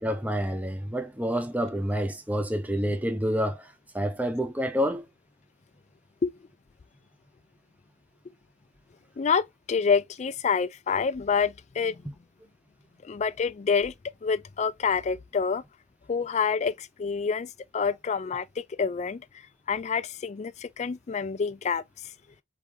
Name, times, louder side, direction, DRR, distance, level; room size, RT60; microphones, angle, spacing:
voice 1, 0.0-5.0, equal, 10° right, 0.7 m, -28 dB
voice 2, 9.2-12.0 13.0-13.9 14.2-15.6 16.1-19.2 19.7-21.8, left 5 dB, 35° left, 0.3 m, -27 dB
4.2 x 3.2 x 3.7 m
head